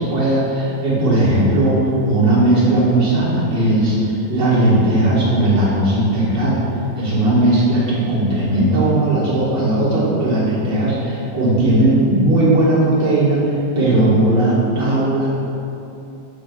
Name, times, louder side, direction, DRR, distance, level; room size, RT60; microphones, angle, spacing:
voice 1, 0.0-6.6 7.0-15.4, right 1 dB, 75° right, -8 dB, 2.4 m, -17 dB
10.5 x 5.1 x 2.4 m, 2.8 s
omnidirectional pair, 1.9 m